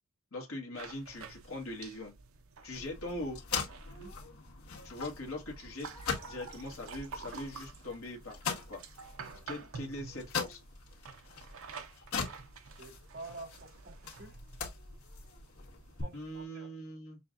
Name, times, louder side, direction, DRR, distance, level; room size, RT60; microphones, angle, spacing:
voice 1, 0.3-2.1 2.6-3.4 4.8-5.9 6.2-8.8 9.5-10.6 16.1-17.2, left 1 dB, 70° left, 1.5 m, -41 dB
sound 1, 0.7-16.4, right 5 dB, 70° right, 0.8 m, -50 dB
sound 2, 2.7-16.0, left 5 dB, 90° left, 1.8 m, -42 dB
voice 2, 12.8-14.4 16.0-16.7, right 2 dB, 50° right, 2.4 m, -48 dB
6.8 x 2.3 x 2.5 m
head